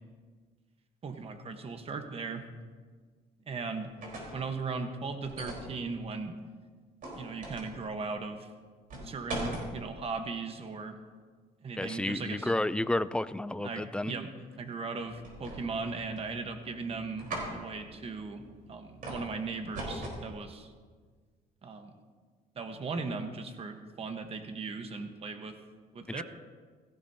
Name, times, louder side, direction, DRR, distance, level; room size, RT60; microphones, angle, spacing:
voice 1, 1.0-2.4 3.5-3.9 4.3-6.3 7.2-8.5 9.0-11.0 11.6-12.5 13.6-14.3 14.6-18.4 18.7-20.7 21.6-21.9 22.5-25.6 25.9-26.2, right 4 dB, 35° right, 6 dB, 1.3 m, -38 dB
sound 1, 3.8-4.4 5.2-5.7 7.0-7.7 8.9-9.7 15.2-15.8 16.2-16.7 17.2-17.5 19.0-19.3 19.7-20.2, right 1 dB, 55° right, 4.4 m, -38 dB
voice 2, 11.8-14.1 26.2-26.3, left 1 dB, 5° left, 15 dB, 0.3 m, -31 dB
sound 2, 14.9-20.2, right 1 dB, 90° right, 3.0 m, -56 dB
16.5 x 15.5 x 2.9 m, 1.5 s
cardioid pair, 110°, 17 cm